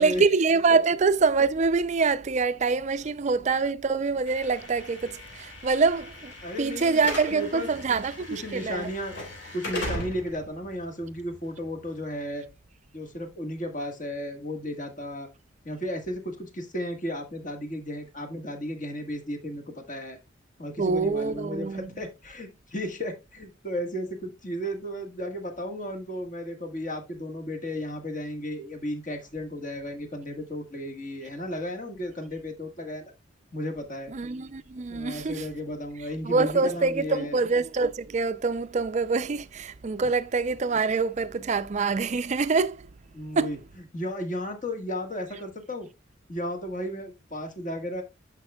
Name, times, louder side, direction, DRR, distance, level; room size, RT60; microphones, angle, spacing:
voice 1, 0.0-8.9 20.8-21.9 34.1-35.5 36.2-42.9 43.4-43.5, right 4 dB, 35° right, 0.4 m, -25 dB
Slam / Alarm, 4.3-12.3, left 1 dB, 60° left, 3.4 m, -39 dB
voice 2, 6.4-7.0 7.3-8.0 8.3-9.1 9.5-12.5 12.9-15.3 15.6-20.2 20.6-33.1 33.5-34.1 34.9-37.4 43.1-45.9 46.3-48.0, equal, 40° left, 1.5 m, -34 dB
10.5 x 5.2 x 2.3 m
head